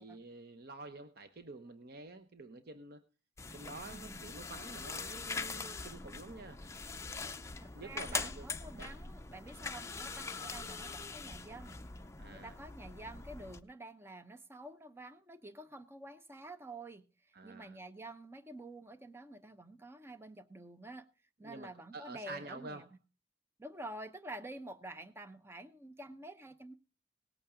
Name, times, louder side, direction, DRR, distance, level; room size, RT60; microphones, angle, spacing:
voice 1, 0.0-3.0 3.5-6.6 7.7-8.9 12.2-12.6 17.3-17.8 21.4-22.8, right 3 dB, 60° right, 9 dB, 0.9 m, -49 dB
sound 1, 3.4-13.6, left 4 dB, 15° left, 0.6 m, -43 dB
voice 2, 3.9-4.2 7.6-11.8 12.3-17.0 17.4-21.0 21.4-22.9 23.6-26.7, right 1 dB, 15° right, 11 dB, 0.8 m, -49 dB
18.5 x 8.7 x 3.7 m, 0.32 s
head